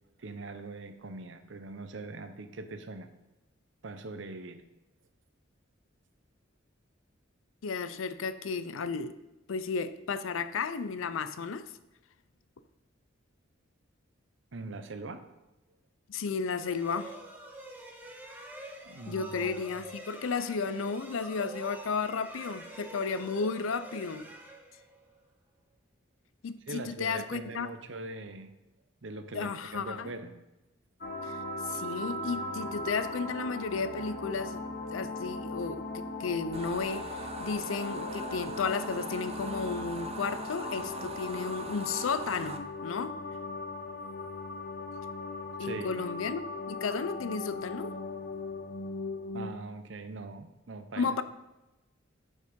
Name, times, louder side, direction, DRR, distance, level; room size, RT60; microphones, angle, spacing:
voice 1, 0.2-3.1 3.8-4.6 14.5-15.3 18.8-19.6 26.7-28.5 29.0-30.4 45.6-46.1 49.3-51.1, right 3 dB, 65° right, 9 dB, 0.7 m, -42 dB
voice 2, 7.6-9.1 9.5-11.7 16.1-17.1 19.1-24.3 26.4-27.7 29.3-30.1 31.3-31.4 31.7-34.6 34.9-37.0 37.4-43.2 45.6-46.4 46.7-48.0 51.0-51.2, left 5 dB, 85° left, 13 dB, 0.5 m, -33 dB
sound 1, 16.4-25.2, right 1 dB, 10° right, 0.9 m, -47 dB
sound 2, 31.0-49.5, left 2 dB, 50° left, 1.0 m, -38 dB
sound 3, 36.5-42.6, right 4 dB, 30° right, 0.5 m, -42 dB
7.9 x 5.5 x 5.1 m, 1.0 s
head